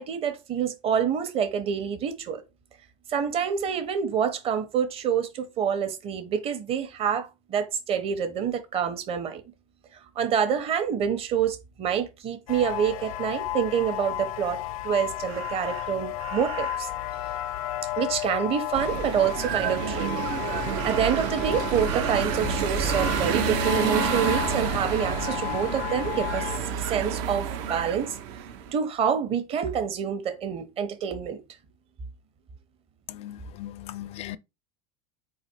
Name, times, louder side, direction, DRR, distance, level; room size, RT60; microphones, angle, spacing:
voice 1, 0.0-2.4 3.1-9.4 10.2-16.9 18.0-20.3 20.8-26.5 26.8-28.2 28.7-31.4, right 8 dB, 35° right, 1.0 m, -27 dB
sound 1, 12.5-26.6, left 13 dB, 90° left, 0.5 m, -33 dB
Crow, 15.2-17.0 20.7-21.5 21.8-23.6 23.9-24.9 25.2-25.5 25.8-27.1 27.7-28.0, right 8 dB, 85° right, 1.0 m, -38 dB
sound 2, 18.7-28.7, right 7 dB, 65° right, 0.8 m, -29 dB
voice 2, 33.1-34.4, left 13 dB, 35° left, 0.4 m, -38 dB
4.2 x 2.7 x 4.4 m
supercardioid pair, 130°, 17 cm